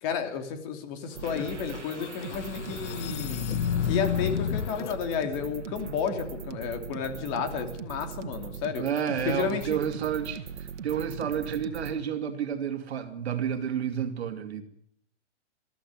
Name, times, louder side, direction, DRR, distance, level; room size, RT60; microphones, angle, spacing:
voice 1, 0.0-3.4 3.8-8.8 9.2-9.8, left 7 dB, 30° left, 2.9 m, -32 dB
sound 1, 1.1-11.9, right 7 dB, 80° right, 2.0 m, -40 dB
sound 2, 1.2-5.0, left 9 dB, 80° left, 0.9 m, -31 dB
voice 2, 8.7-14.6, right 8 dB, 65° right, 2.7 m, -30 dB
21.5 x 14.5 x 9.6 m
hypercardioid pair, 160°, 35 cm